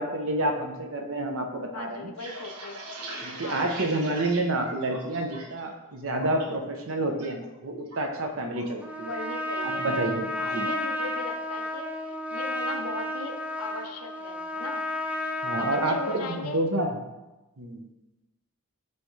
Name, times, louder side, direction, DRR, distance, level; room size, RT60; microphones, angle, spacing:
voice 1, 0.0-2.1 3.2-9.1 9.6-10.7 15.4-17.0 17.6-17.8, right 1 dB, 65° right, 4 dB, 0.8 m, -29 dB
voice 2, 1.7-2.9 3.4-3.7 9.1-9.9 10.3-14.8 15.6-16.6, left 4 dB, 85° left, 5 dB, 0.7 m, -38 dB
sound 1, 1.9-5.6 5.9-6.4 6.8-7.3 7.5-8.8 9.1-9.4 9.7-10.2, right 2 dB, 90° right, 1.1 m, -41 dB
Trumpet, 8.8-16.5, left 1 dB, 5° right, 0.3 m, -32 dB
9.5 x 3.5 x 3.2 m, 1.1 s
head